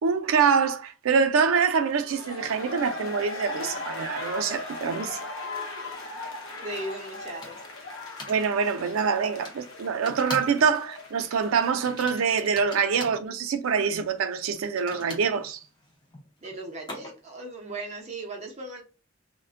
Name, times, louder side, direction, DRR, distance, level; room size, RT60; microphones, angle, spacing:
voice 1, 0.0-5.2 8.3-15.6, right 6 dB, 90° right, 0.4 m, -25 dB
sound 1, 1.9-12.7 13.0-13.1, left 2 dB, 80° left, 0.6 m, -38 dB
sound 2, 6.6-6.7 7.4-7.8 8.2-8.4 9.4-9.6 10.0-10.6 10.9-11.2 11.8-13.2 14.6-17.4, left 1 dB, 20° left, 0.6 m, -41 dB
voice 2, 6.6-7.6 16.4-18.8, right 2 dB, 30° right, 0.6 m, -37 dB
2.5 x 2.1 x 2.4 m
head